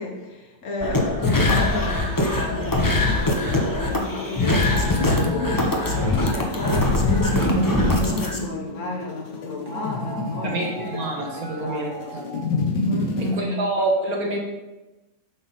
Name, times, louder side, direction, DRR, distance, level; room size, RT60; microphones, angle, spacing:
voice 1, 0.0-5.0 5.3-12.2 12.9-13.6, left 3 dB, 50° left, -1 dB, 1.1 m, -32 dB
sound 1, 0.8-8.4, left 2 dB, 20° left, 0.5 m, -22 dB
sound 2, 2.7-13.3, left 2 dB, 90° left, 1.7 m, -29 dB
sound 3, 3.1-12.5, right 1 dB, 15° right, 1.7 m, -39 dB
voice 2, 10.4-12.2 13.2-14.4, right 2 dB, 60° right, -1 dB, 1.9 m, -27 dB
8.3 x 5.8 x 4.1 m, 1.1 s
omnidirectional pair, 1.8 m